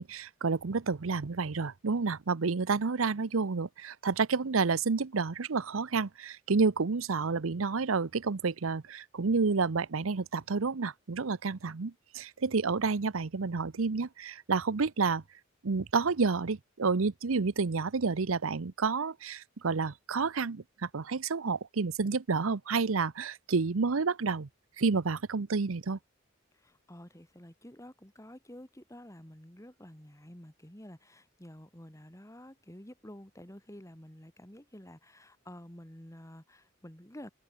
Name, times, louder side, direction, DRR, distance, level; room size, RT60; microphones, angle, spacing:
voice 1, 0.0-15.2 15.6-24.5 24.8-26.0, right 4 dB, 85° right, 0.8 m, -30 dB
voice 2, 26.5-37.3, equal, 15° left, 3.4 m, -50 dB
head